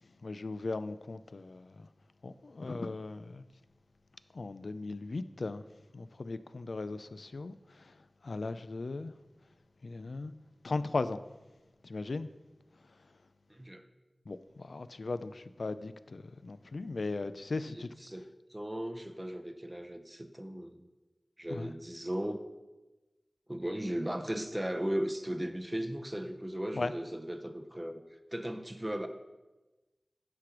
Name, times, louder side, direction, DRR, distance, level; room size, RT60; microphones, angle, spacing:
voice 1, 0.2-1.9 2.2-3.4 4.3-5.6 5.9-7.5 8.2-9.1 9.8-10.3 10.6-11.2 11.8-12.3 14.3-17.9 21.5-21.7 26.7-26.9, left 3 dB, 80° left, 0.3 m, -37 dB
voice 2, 13.5-13.8 17.5-18.2 18.5-20.9 21.4-22.4 23.5-28.0 28.3-29.1, right 1 dB, 15° right, 0.5 m, -37 dB
9.5 x 3.3 x 5.8 m
wide cardioid pair, 65°, 0 cm